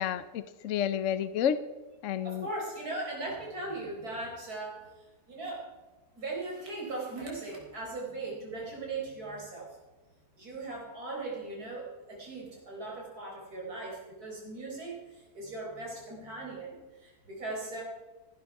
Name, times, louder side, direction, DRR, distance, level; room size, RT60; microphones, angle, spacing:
voice 1, 0.0-1.6 2.0-2.5, left 9 dB, 65° left, 14 dB, 0.8 m, -30 dB
voice 2, 2.2-5.7 6.2-9.8 10.4-17.8, right 2 dB, 60° right, -2 dB, 4.7 m, -39 dB
16.0 x 11.5 x 4.7 m, 1.2 s
omnidirectional pair, 1.8 m